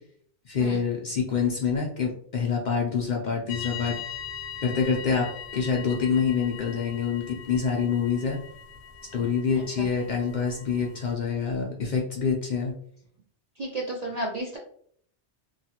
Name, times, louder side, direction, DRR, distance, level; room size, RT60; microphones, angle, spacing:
voice 1, 0.5-4.0 4.6-8.4 9.1-12.7, left 6 dB, 55° left, -1 dB, 0.5 m, -26 dB
sound 1, 3.5-11.1, left 7 dB, 80° left, 0.9 m, -41 dB
voice 2, 9.5-9.9 10.8-10.9 13.6-14.6, right 2 dB, 60° right, -1 dB, 0.4 m, -33 dB
3.0 x 2.4 x 2.8 m, 0.63 s
omnidirectional pair, 1.2 m